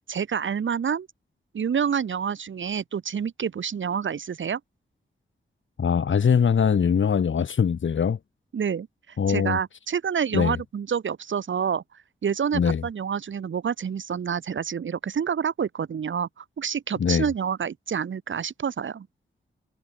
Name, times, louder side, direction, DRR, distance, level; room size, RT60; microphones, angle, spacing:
voice 1, 0.1-1.1 1.5-4.6 8.5-11.8 12.2-19.1, right 7 dB, 85° right, 2.7 m, -28 dB
voice 2, 5.8-8.2 9.2-9.6 10.3-10.6 12.5-12.8 17.0-17.2, left 7 dB, 85° left, 5.0 m, -22 dB
wide cardioid pair, 165°, 19 cm